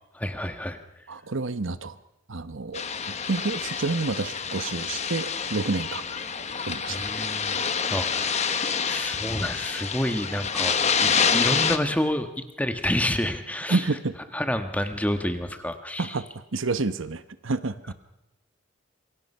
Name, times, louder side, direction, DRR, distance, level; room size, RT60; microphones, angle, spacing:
voice 1, 0.1-0.8 6.9-7.6 7.9-13.9 14.3-16.2 17.9-18.0, left 1 dB, 5° left, 7 dB, 1.4 m, -29 dB
voice 2, 1.1-2.0 2.3-2.8 3.3-6.0 6.7-7.1 13.7-14.1 16.0-16.2 16.5-17.9, right 3 dB, 75° right, 13 dB, 1.0 m, -29 dB
sound 1, 2.7-11.8, left 6 dB, 35° left, 1.2 m, -27 dB
27.0 x 23.5 x 5.6 m, 0.93 s
head